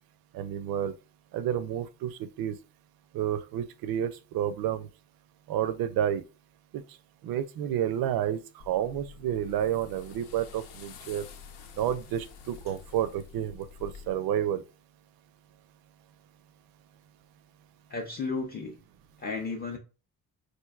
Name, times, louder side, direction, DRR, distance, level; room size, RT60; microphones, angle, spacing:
voice 1, 0.3-0.9 1.3-2.6 3.1-4.9 5.5-6.2 6.7-6.8 7.2-8.4 8.7-11.3 11.8-14.6, right 10 dB, 65° right, 0.5 m, -30 dB
sound 1, 8.6-14.1, left 6 dB, 85° left, 0.7 m, -48 dB
voice 2, 17.9-18.8 19.2-19.8, left 4 dB, 25° left, 0.5 m, -33 dB
4.5 x 2.5 x 2.3 m
cardioid pair, 155°, 38 cm